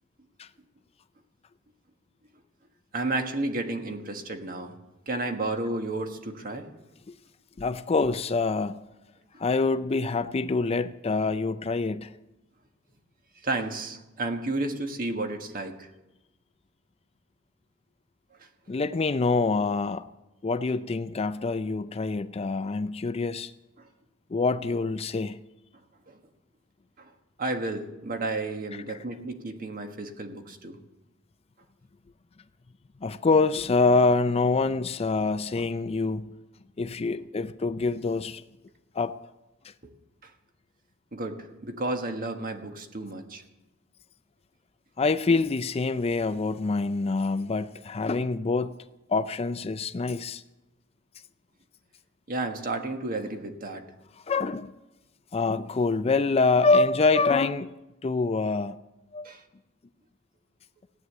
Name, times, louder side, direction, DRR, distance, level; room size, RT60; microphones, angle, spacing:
voice 1, 2.9-4.8 5.1-6.7 13.4-15.9 26.1-26.2 27.0-27.1 27.4-30.8 39.8-39.9 40.2-40.3 41.1-43.4 52.3-53.8 59.2-59.4, right 2 dB, 45° right, 1.6 m, -32 dB
voice 2, 7.6-8.8 9.4-12.1 18.7-20.1 20.4-23.5 24.3-25.4 33.0-36.3 36.8-38.4 38.9-39.1 39.6-39.7 45.0-48.7 49.1-50.4 54.3-54.7 55.3-57.8 58.0-58.8 59.1-59.3, left 3 dB, 30° left, 0.4 m, -25 dB
16.0 x 9.4 x 8.1 m
head